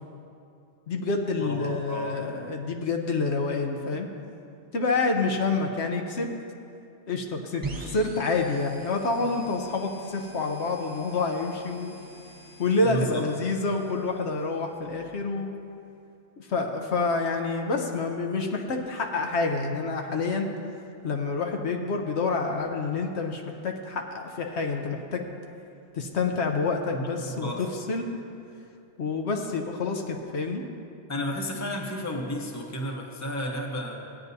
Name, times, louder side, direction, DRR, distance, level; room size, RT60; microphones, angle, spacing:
voice 1, 0.9-4.1 4.7-6.3 7.1-11.9 12.6-15.5 16.4-20.5 21.0-25.2 25.9-28.1 29.0-30.6, left 3 dB, 70° left, 3 dB, 1.1 m, -28 dB
voice 2, 1.4-2.1 12.8-13.3 26.9-27.1 27.4-27.7 31.1-34.0, equal, 15° left, 0 dB, 0.9 m, -32 dB
sound 1, 7.6-15.2, right 2 dB, 20° right, 1.2 m, -44 dB
16.0 x 9.6 x 2.7 m, 2.6 s
omnidirectional pair, 1.2 m